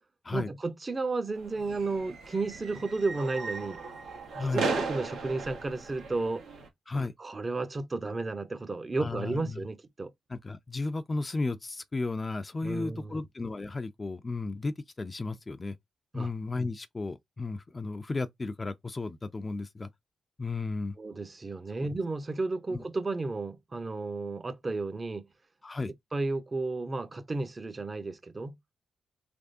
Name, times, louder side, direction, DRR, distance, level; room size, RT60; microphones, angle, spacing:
voice 1, 0.3-3.8 4.3-6.4 6.9-10.1 12.6-13.3 16.1-16.3 21.0-25.3 26.1-28.6, right 3 dB, 35° right, 0.7 m, -33 dB
sound 1, 1.3-6.7, right 4 dB, 80° right, 1.0 m, -36 dB
voice 2, 9.0-9.6 10.3-15.8 16.1-19.9 20.4-21.0 22.7-22.8 25.6-25.9, left 3 dB, 35° left, 0.4 m, -34 dB
3.5 x 3.2 x 2.6 m
supercardioid pair, 50°, 0 cm